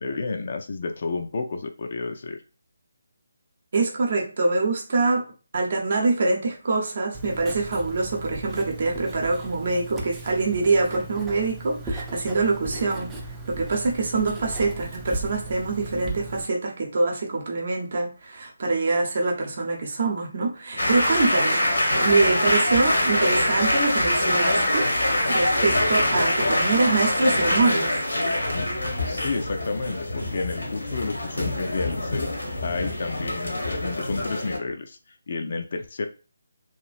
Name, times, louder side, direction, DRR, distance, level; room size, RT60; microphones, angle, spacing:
voice 1, 0.0-2.4 29.1-32.3 32.6-36.1, left 3 dB, 50° left, 5 dB, 0.4 m, -31 dB
voice 2, 3.7-5.3 5.5-13.1 13.5-27.9, right 3 dB, 50° right, 1 dB, 0.7 m, -25 dB
Writing, 7.1-16.4, right 2 dB, 10° right, 0.4 m, -36 dB
sound 1, 20.8-34.6, left 1 dB, 80° left, 0.9 m, -24 dB
3.0 x 2.4 x 2.4 m, 0.34 s
figure-of-eight pair, 150°, 0 cm